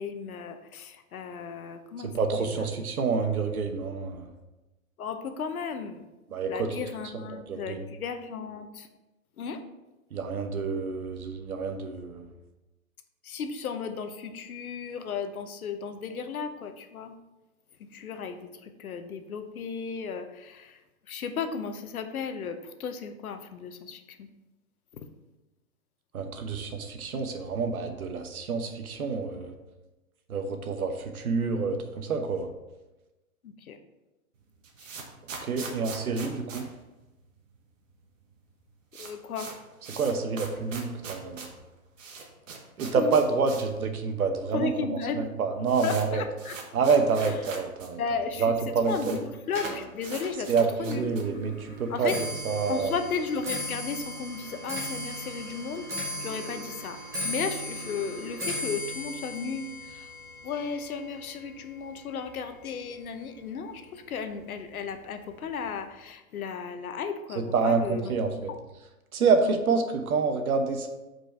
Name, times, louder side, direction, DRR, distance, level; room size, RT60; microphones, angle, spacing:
voice 1, 0.0-2.1 2.4-2.7 5.0-6.1 6.5-8.9 9.4-9.6 13.2-17.1 17.9-20.8 21.1-24.3 25.0-25.1 33.4-33.8 39.0-39.5 43.0-43.2 44.5-45.3 45.8-46.6 47.2-47.4 48.0-48.6 48.9-50.5 50.8-51.2 51.9-52.2 52.7-55.9 56.2-57.0 57.2-60.1 60.4-68.3, left 5 dB, 80° left, 8 dB, 0.9 m, -35 dB
voice 2, 2.0-4.3 6.3-6.7 7.1-7.8 10.1-12.3 26.1-29.5 30.3-32.5 35.4-36.7 40.0-41.4 42.8-44.7 45.1-46.2 46.7-48.0 48.4-49.2 50.5-52.1 52.4-52.9 67.3-68.5 69.1-70.9, right 5 dB, 85° right, 6 dB, 1.1 m, -27 dB
sound 1, 34.4-37.6 37.9-38.0 38.2-38.3 38.6-43.8 44.1-44.2 44.9-45.0 45.2-47.9 48.2-48.3 48.5-49.2 49.5-51.4, right 4 dB, 60° right, 1.3 m, -42 dB
Clock, 49.5-62.8 63.2-63.6 64.4-64.5 64.8-65.2 65.5-65.6, left 1 dB, 5° right, 0.8 m, -37 dB
5.3 x 4.7 x 4.4 m, 1.0 s
hypercardioid pair, 160°, 42 cm